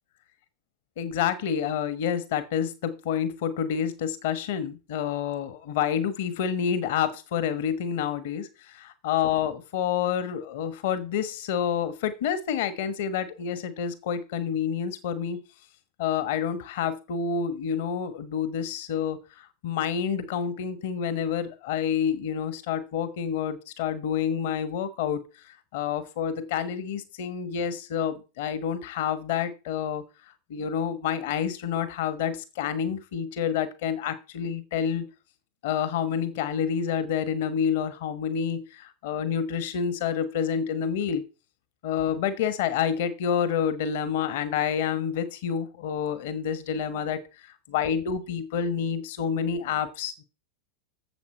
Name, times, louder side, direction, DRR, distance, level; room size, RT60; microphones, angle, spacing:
voice 1, 1.0-15.4 16.0-25.2 25.7-30.0 30.5-35.1 35.6-41.3 41.8-47.2 47.7-50.2, left 8 dB, 50° left, 13 dB, 1.3 m, -28 dB
10.5 x 7.6 x 4.4 m, 0.31 s
figure-of-eight pair, 90°, 0 cm